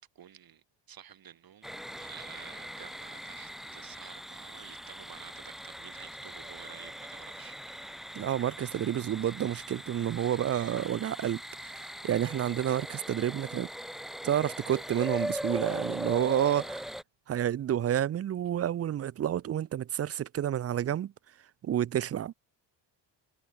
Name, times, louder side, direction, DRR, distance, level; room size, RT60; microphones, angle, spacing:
voice 1, 0.2-8.2, right 9 dB, 50° right, 3.9 m, -51 dB
sound 1, 1.6-17.0, equal, ahead, 1.2 m, -40 dB
voice 2, 8.2-13.7 14.2-16.9 17.3-21.1 21.6-22.3, right 10 dB, 35° right, 0.5 m, -30 dB
cardioid pair, 145°, 46 cm